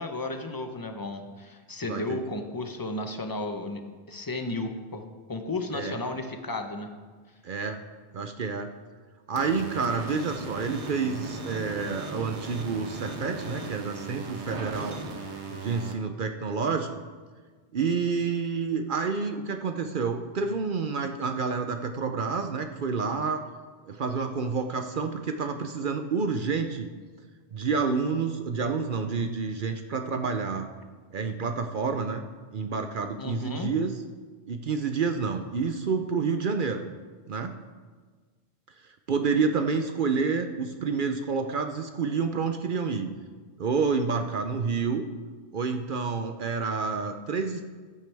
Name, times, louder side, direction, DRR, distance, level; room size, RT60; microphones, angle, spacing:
voice 1, 0.0-3.8 4.1-6.9 33.2-33.7, left 2 dB, 20° left, 6 dB, 0.8 m, -33 dB
voice 2, 1.8-2.2 5.7-6.0 7.4-7.8 8.1-8.8 9.3-15.0 15.5-16.9 17.7-23.4 23.8-26.9 27.5-30.7 31.1-32.2 32.5-33.9 34.5-36.8 37.3-37.6 39.1-43.1 43.6-45.0 45.5-47.6, right 5 dB, 55° right, 6 dB, 0.7 m, -29 dB
sound 1, 9.4-15.9, right 3 dB, 90° right, 1.5 m, -37 dB
14.5 x 9.2 x 3.4 m, 1.4 s
omnidirectional pair, 1.1 m